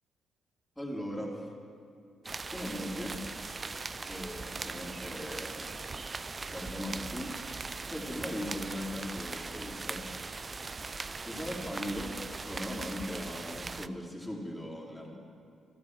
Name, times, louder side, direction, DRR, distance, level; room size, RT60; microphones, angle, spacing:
voice 1, 0.8-1.5 2.2-3.3 4.0-5.7 6.5-7.6 7.9-10.0 11.2-15.2, equal, 5° left, -3 dB, 3.6 m, -39 dB
sound 1, 2.2-13.9, right 3 dB, 35° right, 0.5 m, -40 dB
13.0 x 12.5 x 6.2 m, 2.5 s
hypercardioid pair, 45°, 0 cm